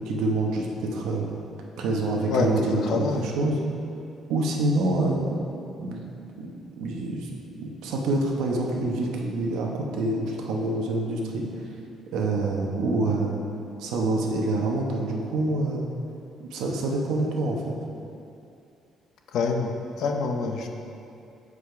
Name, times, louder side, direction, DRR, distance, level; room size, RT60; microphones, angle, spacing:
voice 1, 0.1-1.3 1.8-3.6 4.3-5.3 5.8-6.0 6.4-7.3 7.6-11.6 12.1-13.4 13.8-15.9 16.4-17.7, right 2 dB, 85° right, 0 dB, 1.0 m, -26 dB
voice 2, 2.3-3.2 19.3-19.7 20.0-20.7, left 4 dB, 70° left, 3 dB, 0.6 m, -26 dB
6.9 x 4.9 x 4.7 m, 2.6 s
cardioid pair, 120°, 0 cm